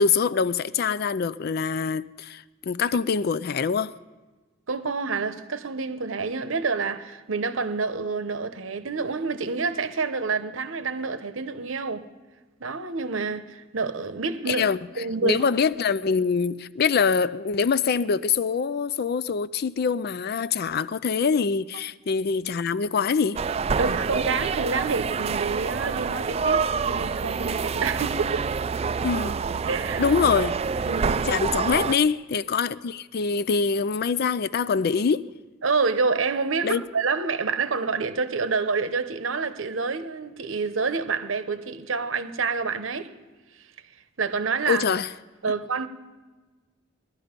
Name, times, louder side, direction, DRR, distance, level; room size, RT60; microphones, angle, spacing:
voice 1, 0.0-3.9 14.5-14.8 15.2-23.4 29.0-29.4 30.0-30.6 31.2-35.3 36.6-36.8 44.7-45.1, left 5 dB, 50° left, 0.4 m, -24 dB
voice 2, 4.7-12.1 12.6-14.6 14.9-15.5 23.8-28.5 29.7-30.1 30.9-31.3 35.6-43.1 44.2-44.8 45.4-45.9, right 4 dB, 85° right, 0.9 m, -28 dB
sound 1, 23.4-32.0, right 5 dB, 30° right, 0.3 m, -27 dB
19.0 x 12.0 x 5.2 m
head